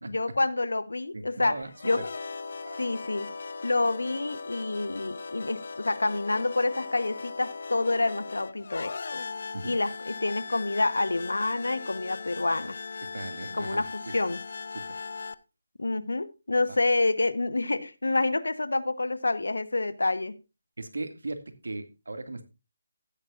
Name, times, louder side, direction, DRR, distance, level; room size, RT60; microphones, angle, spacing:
voice 1, 0.1-1.6 1.8-2.0 2.8-3.3 3.6-9.2 9.6-12.8 13.5-14.4 15.8-20.4, left 2 dB, 90° left, 14 dB, 1.2 m, -28 dB
voice 2, 1.1-1.7 2.0-2.1 2.7-2.9 9.5-9.7 13.1-13.8 14.7-14.8 16.7-16.8 20.8-22.5, right 2 dB, 80° right, 9 dB, 2.2 m, -37 dB
sound 1, 1.7-15.3, left 4 dB, 60° left, 0.8 m, -39 dB
15.0 x 9.8 x 2.5 m, 0.27 s
figure-of-eight pair, 165°, 0 cm